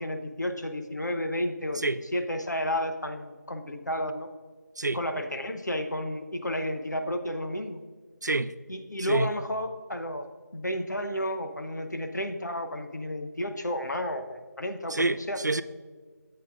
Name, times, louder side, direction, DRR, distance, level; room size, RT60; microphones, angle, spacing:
voice 1, 0.0-4.3 4.9-7.8 8.7-10.3 10.5-15.4, left 1 dB, 70° left, 0.9 m, -32 dB
voice 2, 8.2-8.5 9.1-9.3 14.9-15.6, right 2 dB, 70° right, 0.4 m, -27 dB
10.5 x 7.9 x 2.5 m
figure-of-eight pair, 170°, 10 cm